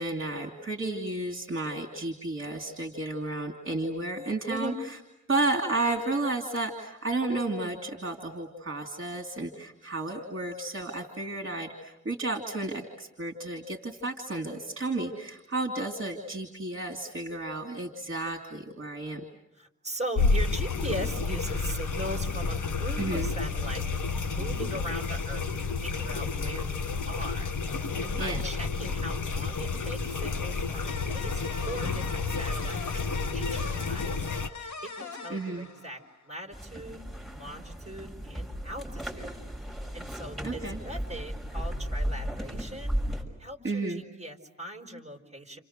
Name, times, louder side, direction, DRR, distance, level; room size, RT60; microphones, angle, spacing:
voice 1, 0.0-4.7 5.3-19.2 23.0-23.3 28.2-28.4 35.3-35.7 40.4-40.8 43.6-44.0, right 2 dB, 40° right, 2 dB, 2.8 m, -32 dB
voice 2, 19.5-23.8 24.3-25.4 25.8-37.0 37.3-39.5 39.9-45.6, right 1 dB, 20° right, 3 dB, 4.5 m, -40 dB
sound 1, 20.2-34.5, left 4 dB, 85° left, 1.5 m, -30 dB
sound 2, 30.9-36.3, left 4 dB, 60° left, 2.2 m, -42 dB
sound 3, 36.5-43.2, equal, ahead, 6.0 m, -35 dB
30.0 x 29.0 x 6.7 m, 0.89 s
wide cardioid pair, 120°, 31 cm